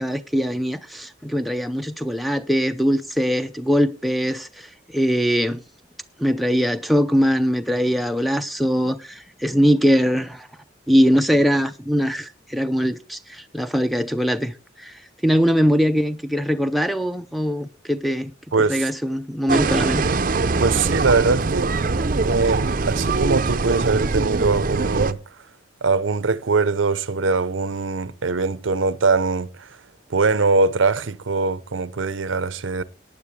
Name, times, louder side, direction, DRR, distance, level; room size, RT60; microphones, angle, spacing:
voice 1, 0.0-5.6 6.2-10.5 10.9-14.9 15.2-18.3 18.7-20.1, equal, ahead, 0.5 m, -21 dB
voice 2, 18.5-18.9 20.6-21.9 22.3-25.2 25.8-29.8 30.1-32.8, right 4 dB, 85° right, 0.7 m, -22 dB
sound 1, 19.5-25.1, right 3 dB, 45° right, 0.6 m, -22 dB
18.5 x 9.5 x 3.2 m
head